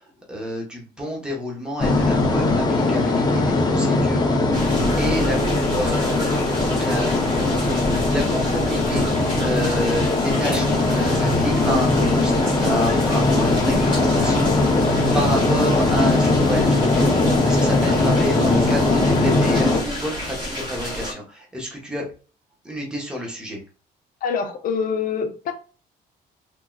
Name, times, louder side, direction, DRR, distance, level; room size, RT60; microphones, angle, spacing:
voice 1, 0.3-6.4 6.7-14.8 15.1-22.1 22.6-23.6, equal, 5° right, -2 dB, 1.1 m, -29 dB
sound 1, 1.8-19.8, left 2 dB, 25° left, 0.8 m, -20 dB
sound 2, 4.5-21.1, equal, 30° right, 1.7 m, -31 dB
Acoustic guitar, 10.5-12.9, right 4 dB, 45° right, 0.7 m, -38 dB
voice 2, 24.2-25.5, left 6 dB, 55° left, 7 dB, 0.7 m, -25 dB
3.6 x 2.8 x 2.3 m, 0.36 s
cardioid pair, 110°, 17 cm